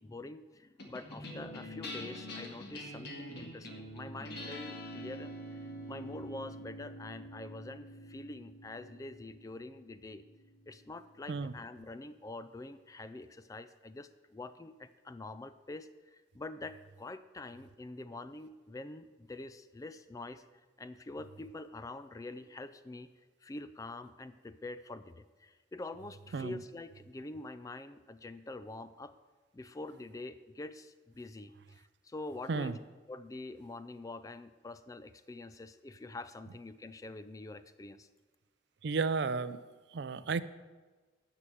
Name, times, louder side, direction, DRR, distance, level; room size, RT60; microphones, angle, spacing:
voice 1, 0.0-10.2 10.7-20.4 20.8-23.1 23.4-29.1 29.5-32.8 33.1-38.1, left 2 dB, 20° left, 12 dB, 0.3 m, -46 dB
sound 1, 0.8-11.4, equal, 55° left, 1.8 m, -46 dB
voice 2, 38.8-39.6 39.9-40.4, right 4 dB, 60° right, 15 dB, 0.4 m, -33 dB
9.8 x 6.0 x 7.7 m, 1.3 s
head